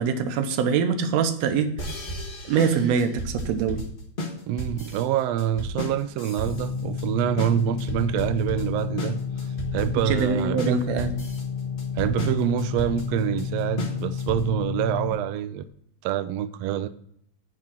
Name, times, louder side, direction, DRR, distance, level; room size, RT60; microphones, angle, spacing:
voice 1, 0.0-1.7 2.5-3.9 10.1-11.3, right 6 dB, 75° right, 1.8 m, -24 dB
sound 1, 1.8-14.7, equal, 55° left, 0.5 m, -34 dB
voice 2, 4.5-9.2 9.7-10.8 12.0-15.6 16.0-16.9, right 10 dB, 90° right, 1.4 m, -26 dB
sound 2, 6.4-15.1, left 6 dB, 75° left, 1.5 m, -31 dB
10.0 x 3.6 x 7.1 m
omnidirectional pair, 3.5 m